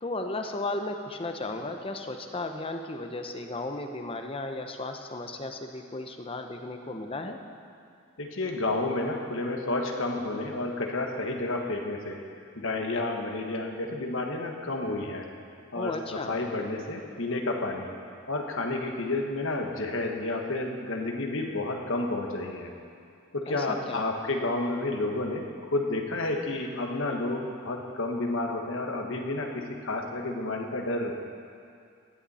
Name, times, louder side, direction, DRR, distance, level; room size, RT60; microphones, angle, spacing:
voice 1, 0.0-7.4 15.7-16.4 23.5-24.0, left 2 dB, 25° left, 5 dB, 0.8 m, -35 dB
voice 2, 8.2-12.2 12.5-15.3 15.7-17.9 18.3-22.7 23.3-31.1, left 2 dB, 60° left, 2 dB, 1.3 m, -30 dB
16.5 x 11.0 x 4.2 m, 2.4 s
head